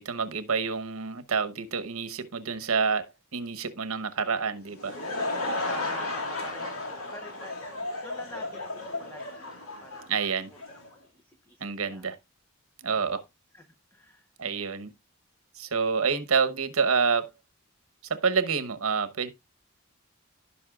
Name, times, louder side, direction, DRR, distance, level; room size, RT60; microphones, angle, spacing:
voice 1, 0.0-5.0 10.1-10.5 11.6-12.2 12.8-13.2 14.4-14.9 15.6-17.3 18.1-19.3, right 5 dB, 80° right, 1.0 m, -28 dB
Laughter / Crowd, 4.6-10.9, left 2 dB, 80° left, 2.1 m, -34 dB
voice 2, 5.7-10.1 10.5-12.1 13.1-13.3 13.5-14.3, left 1 dB, 10° left, 0.7 m, -47 dB
15.5 x 5.5 x 2.4 m
head